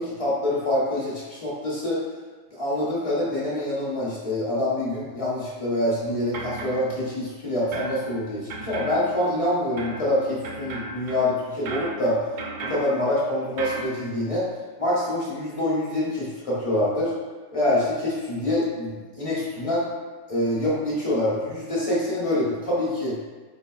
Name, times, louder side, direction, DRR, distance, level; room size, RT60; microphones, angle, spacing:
voice 1, 0.0-2.0 2.5-12.2 12.6-14.5 14.8-17.1 17.5-19.9 20.3-23.2, left 1 dB, 30° left, -7 dB, 1.0 m, -25 dB
sound 1, 6.0-7.4 7.7-13.9, right 2 dB, 60° right, 0.5 m, -37 dB
4.0 x 3.8 x 2.3 m, 1.4 s
omnidirectional pair, 1.3 m